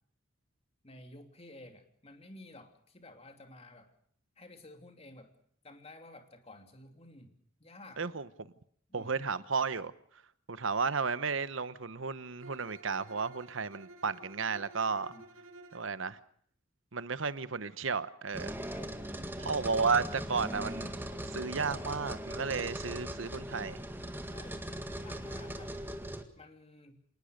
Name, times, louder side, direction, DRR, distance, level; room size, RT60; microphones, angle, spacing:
voice 1, 0.8-3.9 4.4-5.3 5.6-8.0 8.9-9.2 15.1-15.2 18.7-19.0 19.5-19.7 24.2-24.6 25.0-25.8 26.4-27.0, left 2 dB, 30° left, 2.9 m, -52 dB
voice 2, 8.0-8.5 8.9-9.9 10.5-15.1 15.7-16.2 16.9-18.6 19.4-20.9 21.3-23.8, right 5 dB, 65° right, 1.0 m, -33 dB
Bowed string instrument, 12.4-15.9, right 2 dB, 80° right, 2.6 m, -53 dB
sound 1, 18.3-26.2, right 1 dB, 10° right, 1.8 m, -40 dB
27.0 x 19.0 x 6.6 m
head